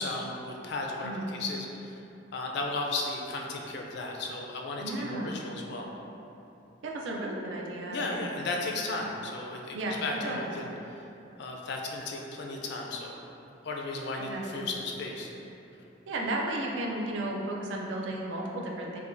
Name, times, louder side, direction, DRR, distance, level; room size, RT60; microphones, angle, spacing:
voice 1, 0.0-2.0 2.3-5.9 7.9-10.7 11.4-13.2 13.6-15.3, left 2 dB, 65° left, 0 dB, 0.4 m, -35 dB
voice 2, 4.8-5.3 6.8-8.2 9.7-10.5 14.2-14.7 16.1-19.0, right 1 dB, 70° right, -1 dB, 0.4 m, -34 dB
4.8 x 2.2 x 2.6 m, 2.9 s
head